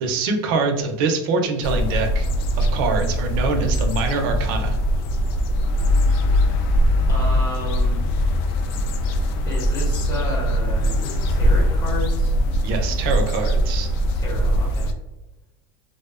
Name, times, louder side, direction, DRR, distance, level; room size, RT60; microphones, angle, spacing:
voice 1, 0.0-2.3 2.6-4.8 12.6-13.9, right 4 dB, 60° right, 4 dB, 0.5 m, -24 dB
sound 1, 1.6-14.9, equal, 65° left, 0.4 m, -21 dB
voice 2, 7.1-8.0 9.4-12.4 14.1-14.9, equal, 25° left, -3 dB, 0.9 m, -32 dB
2.5 x 2.1 x 2.3 m, 1.0 s
supercardioid pair, 140°, 13 cm